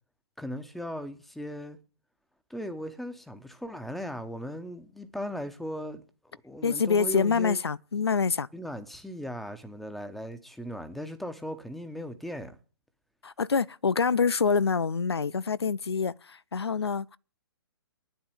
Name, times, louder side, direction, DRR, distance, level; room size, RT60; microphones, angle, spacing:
voice 1, 0.4-1.8 2.5-6.0 6.4-7.6 8.5-12.6, equal, ahead, 1.3 m, -38 dB
voice 2, 6.6-8.5 13.2-17.2, left 5 dB, 90° left, 0.5 m, -26 dB
9.5 x 8.0 x 9.2 m
figure-of-eight pair, 130°, 13 cm